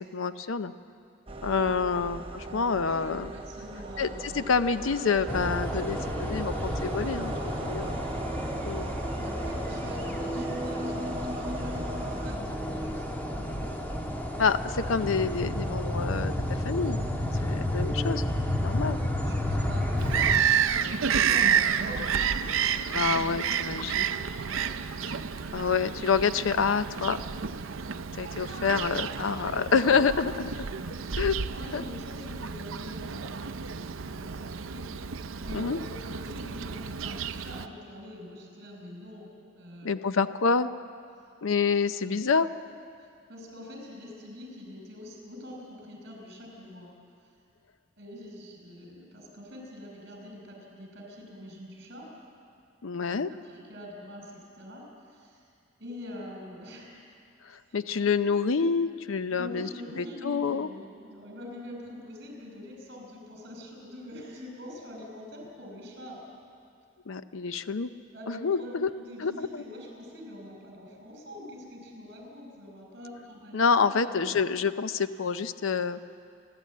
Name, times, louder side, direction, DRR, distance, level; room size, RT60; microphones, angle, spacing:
voice 1, 0.1-0.7 1.4-3.3 4.0-8.0 8.6-8.9 14.4-17.0 17.4-18.2 18.6-19.0 22.9-24.1 25.1-25.2 25.5-27.2 28.1-30.5 31.2-31.3 31.7-31.8 35.5-35.8 39.8-40.7 41.4-42.5 52.8-53.3 57.4-59.7 60.0-60.7 67.1-67.9 68.3-68.9 69.2-69.6 73.5-76.0, left 5 dB, 80° left, 12 dB, 0.6 m, -27 dB
sound 1, 1.3-12.4, right 1 dB, 25° right, 0.9 m, -39 dB
voice 2, 2.4-4.5 9.2-14.2 17.3-17.5 18.6-22.8 24.6-24.8 30.6-39.9 43.0-46.9 48.0-52.1 53.1-55.4 55.8-57.1 57.6-58.1 59.3-66.2 68.1-73.6 73.9-74.4, left 1 dB, 55° right, 2 dB, 5.3 m, -45 dB
sound 2, 5.3-20.4, left 1 dB, 10° left, 1.5 m, -31 dB
Bird vocalization bird call bird song, 20.0-37.7, right 7 dB, 85° right, 0.6 m, -30 dB
28.0 x 11.5 x 8.4 m, 2.4 s
head